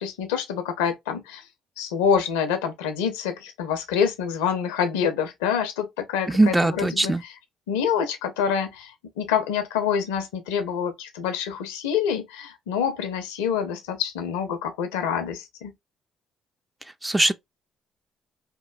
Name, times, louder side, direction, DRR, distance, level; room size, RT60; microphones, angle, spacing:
voice 1, 0.0-1.4 1.8-7.3 7.7-15.7, left 7 dB, 75° left, 0.5 m, -26 dB
voice 2, 6.3-7.2 17.0-17.3, right 2 dB, 15° right, 0.4 m, -20 dB
2.9 x 2.0 x 2.3 m
hypercardioid pair, 50°, 0 cm